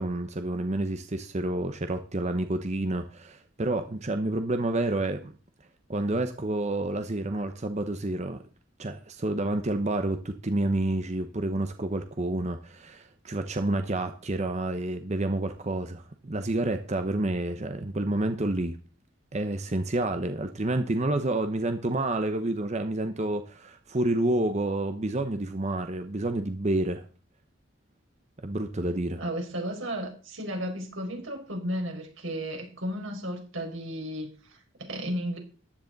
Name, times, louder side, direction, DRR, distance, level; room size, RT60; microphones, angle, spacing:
voice 1, 0.0-5.3 5.9-8.4 8.8-18.8 19.3-27.0 28.4-29.2, right 2 dB, 35° right, 0.9 m, -29 dB
voice 2, 29.2-35.4, equal, 90° right, 4.8 m, -34 dB
14.5 x 10.5 x 4.0 m
head